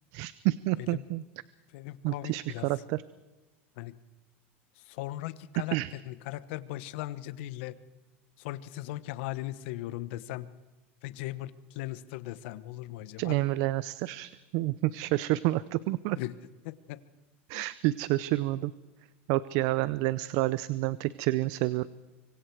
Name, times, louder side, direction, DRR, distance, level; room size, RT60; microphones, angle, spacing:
voice 1, 0.1-1.2 2.0-3.0 5.7-5.9 13.2-16.2 17.5-18.7 19.3-21.9, right 18 dB, 60° right, 18 dB, 0.7 m, -29 dB
voice 2, 1.7-2.8 3.8-4.0 4.7-7.8 8.4-10.5 11.0-13.4 16.1-16.3 16.6-17.0 17.5-17.6, left 16 dB, 70° left, 15 dB, 1.2 m, -38 dB
25.5 x 23.0 x 4.8 m, 1.1 s
supercardioid pair, 115°, 6 cm